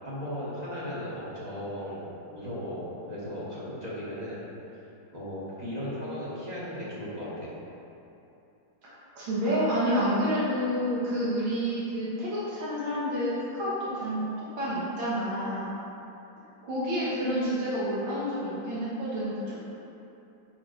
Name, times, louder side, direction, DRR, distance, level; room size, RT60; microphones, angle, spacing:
voice 1, 0.0-2.0 2.3-4.4 5.1-7.5, equal, 25° right, -8 dB, 1.1 m, -36 dB
voice 2, 8.8-15.7 16.6-19.6, equal, 80° right, -8 dB, 2.0 m, -29 dB
9.0 x 4.8 x 2.5 m, 2.9 s
omnidirectional pair, 2.2 m